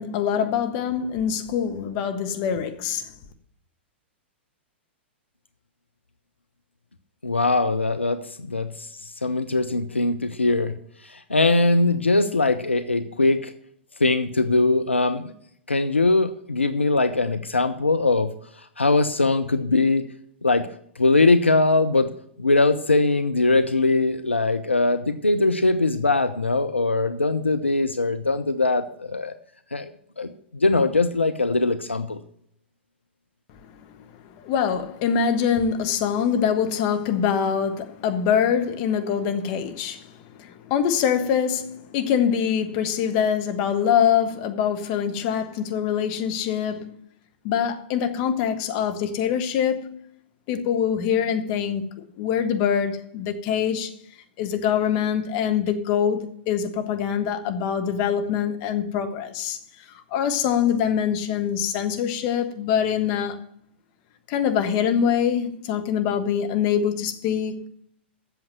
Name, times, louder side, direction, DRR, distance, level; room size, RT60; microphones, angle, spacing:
voice 1, 0.0-3.1 34.0-46.9 47.4-50.0 50.5-51.8 52.2-53.9 54.4-59.6 60.1-63.4 64.3-67.7, left 8 dB, 40° left, 1.3 m, -24 dB
voice 2, 7.2-10.8 11.0-13.5 14.0-15.3 15.7-18.3 18.8-20.1 20.4-20.7 21.0-22.1 22.4-29.3 29.7-29.9 30.2-32.2, left 3 dB, 85° left, 0.7 m, -21 dB
8.1 x 7.1 x 7.6 m
figure-of-eight pair, 105°, 6 cm